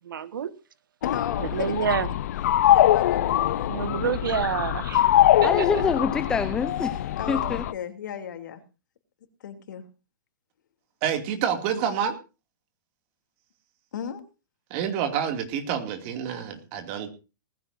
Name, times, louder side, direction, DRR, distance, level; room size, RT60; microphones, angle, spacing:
voice 1, 0.0-0.5 1.4-2.1 3.7-5.1 5.4-5.7, right 7 dB, 85° right, 1.6 m, -28 dB
voice 2, 1.0-1.7 2.7-4.5 7.2-8.6 9.4-9.8 13.9-14.2, left 8 dB, 65° left, 3.1 m, -35 dB
sound 1, 1.0-7.7, left 12 dB, 50° left, 0.7 m, -23 dB
voice 3, 5.4-7.6, left 5 dB, 5° left, 0.6 m, -26 dB
voice 4, 11.0-12.2 14.7-17.1, right 8 dB, 30° right, 2.5 m, -28 dB
19.5 x 15.0 x 2.7 m
hypercardioid pair, 170°, 11 cm